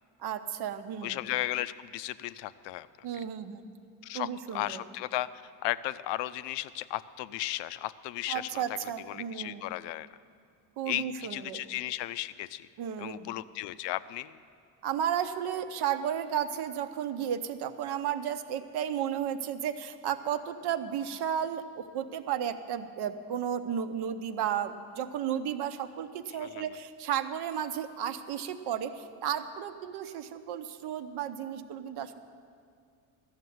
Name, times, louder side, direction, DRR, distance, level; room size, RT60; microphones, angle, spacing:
voice 1, 0.2-1.2 3.0-3.6 4.1-4.8 8.3-9.6 10.8-11.6 12.8-13.3 14.8-32.2, right 9 dB, 65° right, 10 dB, 0.8 m, -33 dB
voice 2, 1.0-2.9 4.0-8.6 9.1-10.1 10.9-12.7 13.0-14.4 26.3-26.6, left 15 dB, 80° left, 15 dB, 0.5 m, -35 dB
12.5 x 6.7 x 9.2 m, 2.3 s
cardioid pair, 130°, 42 cm